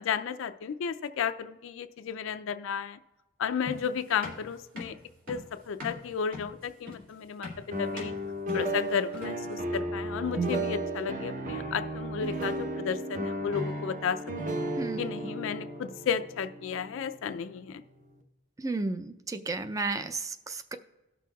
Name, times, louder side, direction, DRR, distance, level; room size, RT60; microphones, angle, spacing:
voice 1, 0.0-3.0 3.4-5.0 5.3-5.4 5.7-7.5 7.8-8.1 8.5-14.2 15.0-17.8, left 7 dB, 65° left, 10 dB, 0.3 m, -33 dB
sound 1, 3.7-9.5, left 2 dB, 65° right, 2.6 m, -43 dB
sound 2, 7.7-17.6, right 1 dB, 40° right, 0.8 m, -34 dB
voice 2, 18.6-20.8, right 3 dB, 15° right, 10 dB, 0.3 m, -33 dB
18.0 x 6.1 x 2.3 m, 1.0 s
head